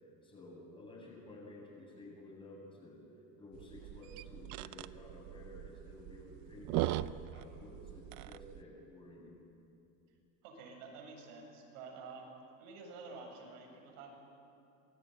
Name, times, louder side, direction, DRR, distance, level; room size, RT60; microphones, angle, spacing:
voice 1, 0.2-3.0 3.4-7.0 7.3-9.4, left 1 dB, 15° left, -2 dB, 7.8 m, -52 dB
sound 1, 3.5-8.6, right 15 dB, 50° right, 0.7 m, -40 dB
voice 2, 10.4-12.3 12.6-14.2, right 4 dB, 80° right, 2 dB, 7.8 m, -50 dB
28.0 x 20.5 x 9.5 m, 2.6 s
cardioid pair, 165°, 38 cm